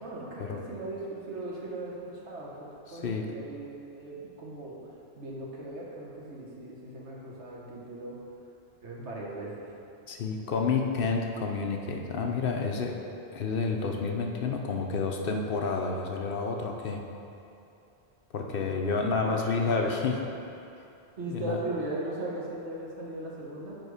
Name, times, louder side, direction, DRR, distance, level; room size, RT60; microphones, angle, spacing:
voice 1, 0.0-4.9 5.2-8.2 8.8-9.7 18.5-19.4 19.8-19.9 21.2-23.8, right 2 dB, 80° right, -4 dB, 1.5 m, -38 dB
voice 2, 2.9-3.3 10.1-13.0 13.3-17.0 18.3-20.2 21.3-21.6, left 4 dB, 60° left, 2 dB, 0.8 m, -29 dB
7.9 x 4.8 x 4.8 m, 2.8 s
omnidirectional pair, 1.1 m